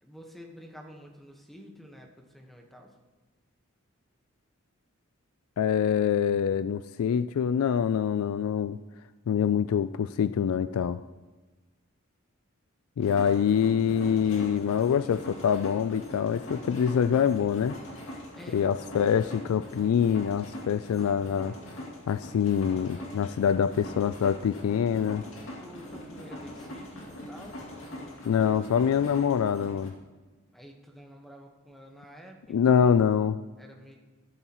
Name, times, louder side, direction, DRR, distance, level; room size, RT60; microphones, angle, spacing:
voice 1, 0.0-2.9 13.0-13.4 18.3-18.8 25.6-28.4 30.5-33.1 33.6-34.0, equal, ahead, 1 dB, 1.2 m, -49 dB
voice 2, 5.6-8.8 9.3-11.0 13.0-17.8 18.5-21.5 22.1-25.2 28.3-29.9 32.5-33.4, left 7 dB, 85° left, 13 dB, 0.3 m, -25 dB
sound 1, 13.0-29.9, left 1 dB, 65° left, 2.3 m, -42 dB
13.5 x 12.0 x 3.0 m, 1.3 s
head